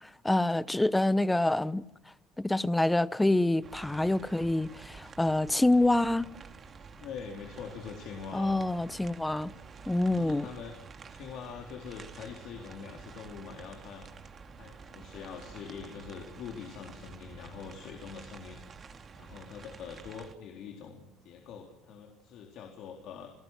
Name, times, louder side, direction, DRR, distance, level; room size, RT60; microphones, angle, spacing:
voice 1, 0.0-1.8 2.4-6.3 8.3-9.5 9.9-10.5, left 2 dB, 10° left, 0.9 m, -26 dB
sound 1, 3.6-20.3, right 5 dB, 40° right, 2.5 m, -49 dB
voice 2, 7.0-8.6 10.1-10.8 11.1-18.6 19.1-23.3, left 6 dB, 65° left, 3.8 m, -44 dB
28.5 x 18.0 x 6.2 m
supercardioid pair, 90°, 0 cm